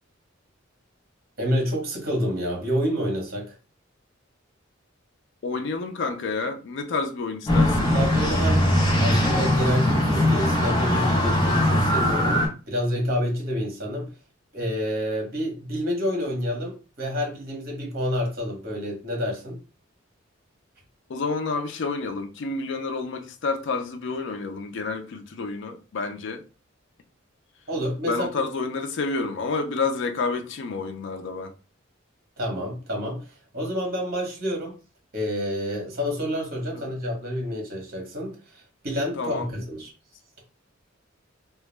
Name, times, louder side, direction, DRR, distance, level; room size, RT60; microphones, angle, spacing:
voice 1, 1.4-3.5 7.9-8.6 9.0-14.1 14.5-19.6 27.7-28.3 32.4-33.3 33.5-34.8 35.1-39.9, equal, 50° right, 0.9 m, -28 dB
voice 2, 5.4-7.9 21.1-26.4 28.1-31.5 36.7-36.8 39.2-39.5, left 4 dB, 65° left, 0.4 m, -29 dB
sound 1, 7.5-12.5, left 1 dB, 20° left, 0.7 m, -21 dB
2.2 x 2.0 x 3.1 m
head